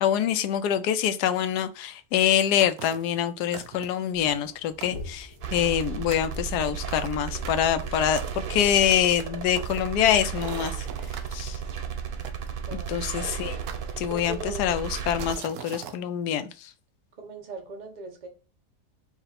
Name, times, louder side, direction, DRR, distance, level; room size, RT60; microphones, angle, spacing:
voice 1, 0.0-10.9 11.3-11.6 12.9-13.6 14.0-16.7, left 10 dB, 85° left, 1.1 m, -25 dB
sound 1, 2.6-3.1 3.5-4.1 4.5-4.6 4.8-5.9 6.1-6.4 6.9-11.4 12.2-13.1 13.7-14.4 14.9-16.0, right 8 dB, 75° right, 1.1 m, -42 dB
sound 2, 4.1-10.2, left 3 dB, 55° left, 0.9 m, -46 dB
sound 3, 5.4-15.4, right 7 dB, 90° right, 0.4 m, -34 dB
voice 2, 12.6-13.3 14.1-14.8 17.2-18.3, right 2 dB, 35° right, 0.8 m, -39 dB
4.9 x 2.4 x 4.1 m
omnidirectional pair, 1.7 m